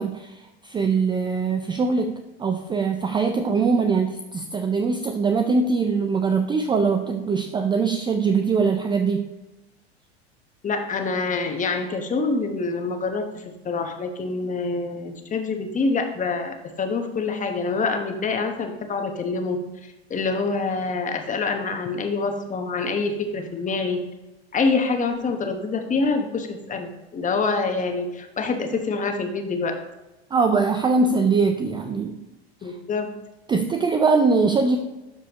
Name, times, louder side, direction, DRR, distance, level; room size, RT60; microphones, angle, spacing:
voice 1, 0.0-9.3 30.3-32.2 32.6-32.7 33.5-34.8, right 4 dB, 15° right, 5 dB, 0.4 m, -22 dB
voice 2, 10.6-19.6 20.1-24.0 24.5-29.7 32.6-33.1, left 4 dB, 25° left, 5 dB, 1.2 m, -26 dB
12.0 x 4.9 x 3.0 m, 1.0 s
hypercardioid pair, 95°, 32 cm